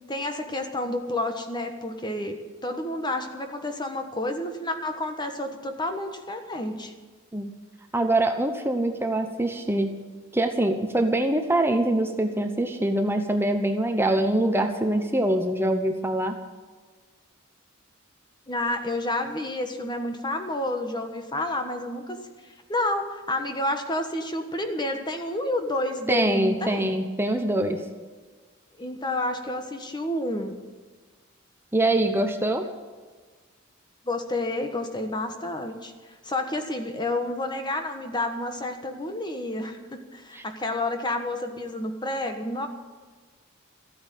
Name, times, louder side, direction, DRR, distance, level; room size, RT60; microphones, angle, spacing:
voice 1, 0.1-6.9 18.5-22.2 22.4-27.0 28.8-30.6 34.0-35.9 36.2-42.7, left 1 dB, 20° left, 6 dB, 1.3 m, -30 dB
voice 2, 7.9-10.0 10.3-16.4 26.1-27.8 31.7-32.6 40.3-40.4, right 1 dB, 10° right, 6 dB, 0.9 m, -24 dB
14.0 x 9.3 x 9.2 m, 1.4 s
head